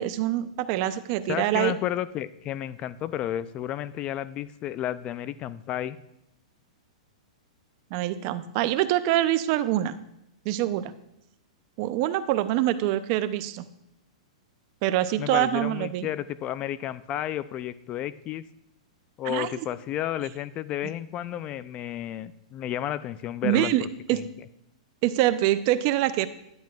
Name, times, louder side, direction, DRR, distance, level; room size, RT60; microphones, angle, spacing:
voice 1, 0.0-1.7 7.9-10.0 10.5-10.9 11.8-13.6 14.8-16.1 19.3-19.5 23.4-24.2 25.0-26.3, right 13 dB, 45° right, 13 dB, 0.5 m, -25 dB
voice 2, 1.3-6.0 15.2-18.4 19.2-24.3, left 12 dB, 30° left, 16 dB, 0.3 m, -32 dB
10.5 x 9.0 x 2.4 m, 0.82 s
hypercardioid pair, 140°, 4 cm